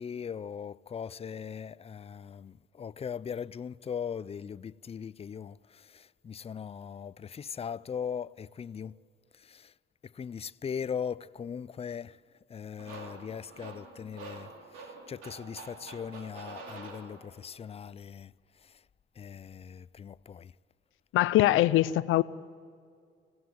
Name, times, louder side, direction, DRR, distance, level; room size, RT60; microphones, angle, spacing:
voice 1, 0.0-9.0 9.3-9.7 10.0-12.2 12.5-18.3 18.6-18.8 19.2-20.5, left 7 dB, 30° left, 0.5 m, -39 dB
sound 1, 12.8-17.6, right 4 dB, 90° right, 3.0 m, -47 dB
voice 2, 21.1-22.2, left 15 dB, 90° left, 0.6 m, -22 dB
26.5 x 17.5 x 7.7 m
cardioid pair, 90°, 20 cm